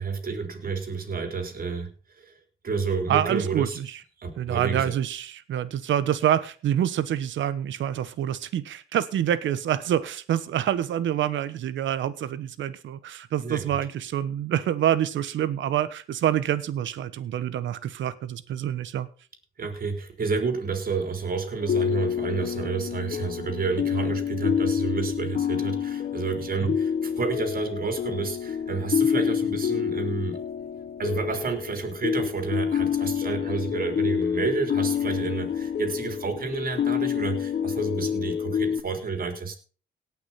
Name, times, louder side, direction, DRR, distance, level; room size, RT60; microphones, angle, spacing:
voice 1, 0.0-2.3 2.6-3.8 4.2-4.9 13.4-13.8 19.6-30.4 31.0-39.6, right 5 dB, 45° right, 6 dB, 3.8 m, -30 dB
voice 2, 3.1-4.0 4.4-19.1 26.6-26.7, right 10 dB, 75° right, 14 dB, 1.2 m, -27 dB
sound 1, 21.6-38.8, left 8 dB, 50° left, 1.1 m, -28 dB
18.0 x 6.2 x 5.8 m, 0.39 s
cardioid pair, 90°, 20 cm